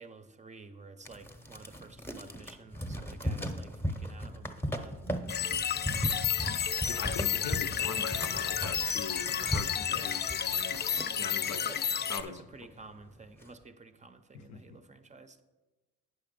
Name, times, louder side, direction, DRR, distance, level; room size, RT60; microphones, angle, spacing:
voice 1, 0.0-5.0 6.8-7.3 9.9-10.3 11.5-15.4, right 4 dB, 25° right, 0.6 m, -51 dB
sound 1, 1.1-11.3 11.8-11.9 12.0-12.7 13.2-13.5, equal, 5° left, 0.8 m, -37 dB
sound 2, 5.3-12.2, left 8 dB, 35° left, 0.4 m, -31 dB
voice 2, 6.7-10.8 11.2-11.6 12.1-12.4 14.5-14.6, left 6 dB, 65° left, 0.7 m, -41 dB
9.3 x 5.8 x 5.3 m
cardioid pair, 90°, 30 cm